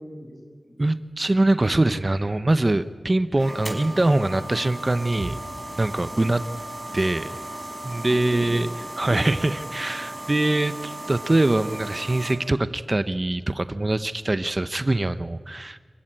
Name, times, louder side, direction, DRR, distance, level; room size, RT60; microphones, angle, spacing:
voice 1, 0.0-0.8 8.1-9.2, left 1 dB, 50° left, 1 dB, 7.6 m, -38 dB
voice 2, 0.8-5.4 5.8-6.4 6.9-7.4 7.8-8.7 9.0-15.8, right 2 dB, 30° right, 12 dB, 0.8 m, -23 dB
sound 1, 3.4-12.4, right 1 dB, ahead, 5.4 m, -36 dB
sound 2, 5.1-9.1, right 2 dB, 60° right, 2.7 m, -46 dB
26.5 x 15.5 x 10.0 m, 1.5 s
wide cardioid pair, 90°, 0 cm